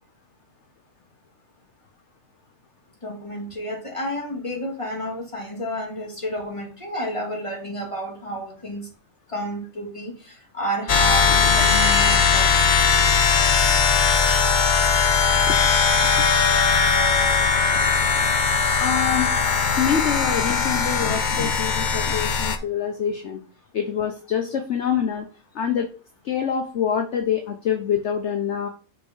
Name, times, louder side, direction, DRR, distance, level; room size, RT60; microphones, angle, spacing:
voice 1, 3.0-8.9 9.3-12.5, right 1 dB, 20° left, 2.4 m, -31 dB
sound 1, 10.9-22.6, left 5 dB, 40° left, 0.8 m, -19 dB
voice 2, 18.6-19.3 19.8-23.4 23.7-25.3 25.5-25.9 26.2-28.7, left 8 dB, 55° left, 1.1 m, -25 dB
6.6 x 5.2 x 5.4 m
omnidirectional pair, 1.5 m